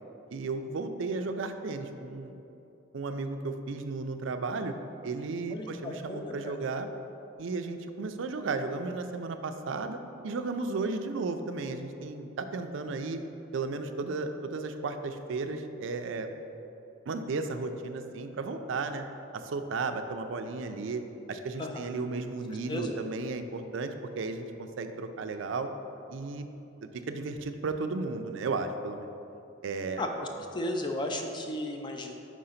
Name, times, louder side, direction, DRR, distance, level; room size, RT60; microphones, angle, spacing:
voice 1, 0.3-2.4 2.9-4.7 5.0-6.9 7.4-10.0 10.2-13.2 13.5-16.3 17.1-19.0 19.3-21.0 21.3-25.7 26.1-26.5 27.1-29.1 29.6-30.0, right 3 dB, 65° right, 8 dB, 0.4 m, -34 dB
voice 2, 5.5-6.6 21.6-21.9 22.7-22.9 30.0-32.2, left 1 dB, 20° left, 3 dB, 0.4 m, -35 dB
4.9 x 3.8 x 5.6 m, 2.9 s
head